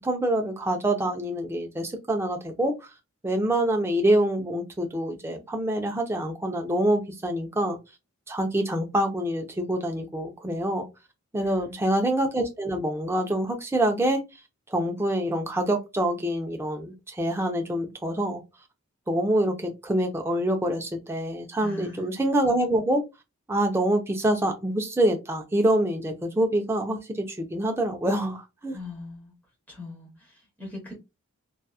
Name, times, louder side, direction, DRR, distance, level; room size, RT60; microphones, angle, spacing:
voice 1, 0.0-2.7 3.2-7.8 8.3-10.9 11.3-14.2 14.7-18.4 19.1-23.0 23.5-28.8, right 1 dB, 10° right, 0.4 m, -26 dB
voice 2, 11.4-11.8 21.6-22.1 28.7-29.3 29.7-30.9, left 3 dB, 10° left, 1.0 m, -41 dB
2.8 x 2.2 x 2.3 m
head